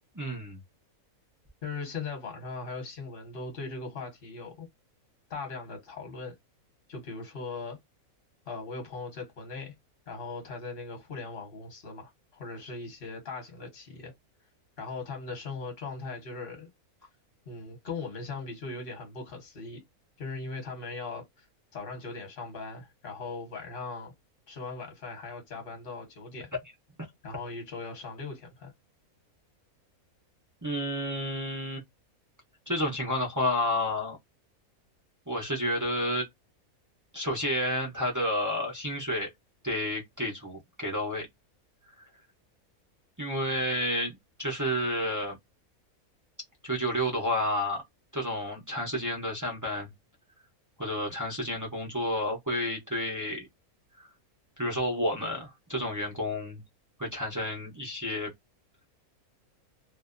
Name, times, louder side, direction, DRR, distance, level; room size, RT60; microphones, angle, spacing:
voice 1, 0.1-0.6 30.6-31.8 32.7-34.2 35.3-36.3 37.1-39.3 39.6-41.3 43.2-45.4 46.6-47.8 48.1-49.9 50.8-53.5 54.0-54.1 54.6-56.6 57.0-58.3, left 1 dB, 30° right, 0.3 m, -30 dB
voice 2, 1.6-4.7 5.3-6.3 6.9-7.8 8.5-9.7 10.1-14.1 14.8-16.7 17.5-19.8 20.2-21.5 21.7-24.1 24.5-26.5 27.2-28.7, left 4 dB, 45° left, 1.1 m, -39 dB
2.6 x 2.2 x 2.4 m
omnidirectional pair, 1.5 m